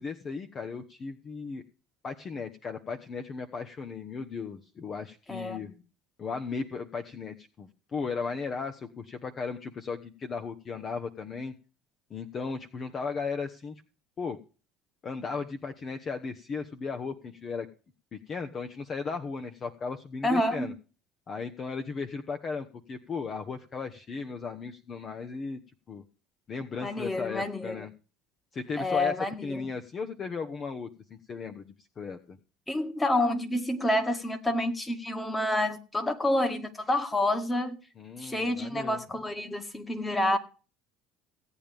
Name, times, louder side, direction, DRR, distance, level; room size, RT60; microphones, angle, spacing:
voice 1, 0.0-1.6 2.0-5.7 6.2-11.5 12.1-13.7 14.2-14.4 15.0-17.7 18.1-20.7 21.3-25.6 25.9-26.0 26.5-27.9 28.5-30.9 31.3-32.4 38.0-39.0, left 5 dB, 35° left, 1.0 m, -36 dB
voice 2, 5.3-5.6 20.2-20.7 26.8-27.8 28.8-29.6 32.7-37.8 38.2-40.4, left 1 dB, 15° left, 1.9 m, -28 dB
17.0 x 9.0 x 3.5 m
supercardioid pair, 100°, 0 cm